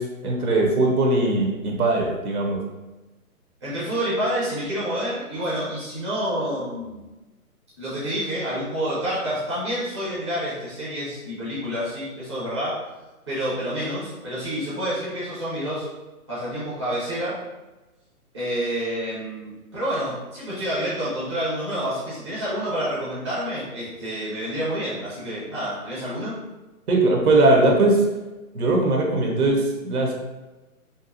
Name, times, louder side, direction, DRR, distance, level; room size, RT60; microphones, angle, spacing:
voice 1, 0.0-2.6 26.9-28.0 28.5-30.1, right 2 dB, 75° right, -1 dB, 0.8 m, -20 dB
voice 2, 3.6-7.0 7.8-12.8 13.3-15.9 16.3-17.4 18.3-26.4, equal, 20° right, -10 dB, 0.5 m, -28 dB
2.6 x 2.0 x 2.6 m, 1.1 s
hypercardioid pair, 155°, 44 cm